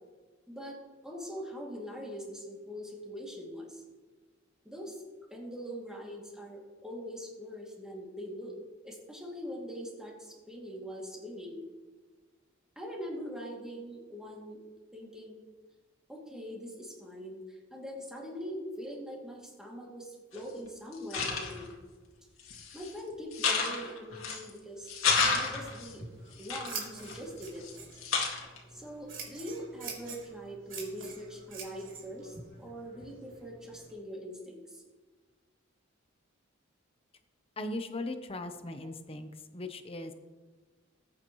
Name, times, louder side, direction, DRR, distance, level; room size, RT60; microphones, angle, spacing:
voice 1, 0.5-0.8 1.0-3.8 4.6-5.0 5.3-8.5 8.8-11.6 12.8-14.6 14.9-15.4 16.1-21.7 22.7-24.9 25.3-26.0 26.4-27.6 28.7-34.8 38.8-38.9, equal, 5° right, -3 dB, 2.6 m, -42 dB
sound 1, 20.3-20.4 20.9-21.7 22.4-22.9 23.3-24.5 24.9-25.9 26.4-27.7 28.0-28.6, left 5 dB, 85° left, 2.1 m, -31 dB
Scissors, 25.8-33.9, right 5 dB, 70° right, 3.3 m, -46 dB
voice 2, 37.6-40.1, left 2 dB, 30° left, 7 dB, 0.9 m, -38 dB
20.0 x 8.9 x 3.2 m, 1.3 s
head